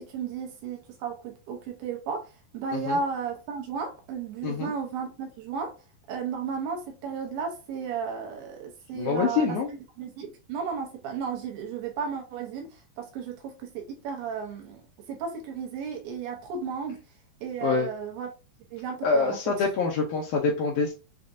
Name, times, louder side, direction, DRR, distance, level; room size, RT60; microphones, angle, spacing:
voice 1, 0.0-5.7 6.1-12.7 13.0-14.8 15.1-17.0 17.4-18.3 18.7-19.4, right 5 dB, 75° right, 2.6 m, -34 dB
voice 2, 9.0-9.7 17.6-17.9 19.0-20.9, left 5 dB, 85° left, 1.7 m, -25 dB
7.0 x 2.5 x 2.6 m
omnidirectional pair, 4.5 m